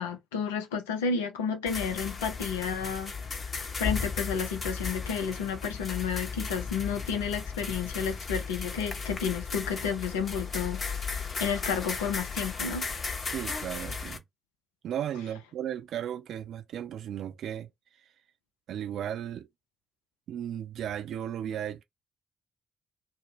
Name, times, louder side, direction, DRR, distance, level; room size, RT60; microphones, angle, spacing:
voice 1, 0.0-3.1 3.7-10.8 11.4-12.9, left 6 dB, 75° left, 0.4 m, -31 dB
sound 1, 1.7-14.2, left 5 dB, 40° left, 0.7 m, -35 dB
voice 2, 13.3-14.2 14.8-17.7 18.7-19.5 20.3-21.8, right 10 dB, 55° right, 0.5 m, -35 dB
2.5 x 2.1 x 3.3 m
figure-of-eight pair, 40°, 0 cm